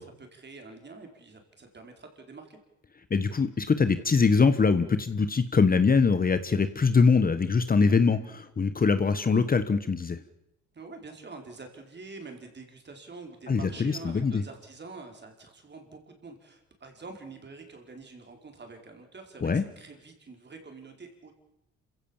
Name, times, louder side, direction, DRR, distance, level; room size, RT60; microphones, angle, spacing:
voice 1, 0.0-2.6 10.7-21.3, right 3 dB, 35° right, 4 dB, 4.8 m, -46 dB
voice 2, 3.1-10.2 13.5-14.4 19.4-19.6, left 5 dB, 30° left, 12 dB, 1.2 m, -23 dB
27.0 x 15.5 x 7.3 m, 0.88 s
cardioid pair, 90°, 30 cm